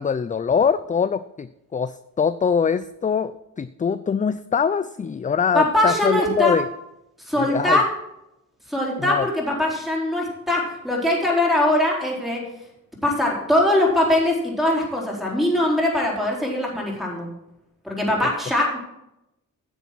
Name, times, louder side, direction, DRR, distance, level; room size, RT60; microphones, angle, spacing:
voice 1, 0.0-6.7 7.4-7.8 9.0-9.3 18.2-18.3, left 6 dB, 25° left, 14 dB, 0.4 m, -23 dB
voice 2, 5.5-6.5 7.3-7.8 8.7-12.4 13.0-17.3 17.8-18.8, left 1 dB, ahead, -2 dB, 4.3 m, -21 dB
10.0 x 7.1 x 6.1 m, 0.87 s
cardioid pair, 65°, 34 cm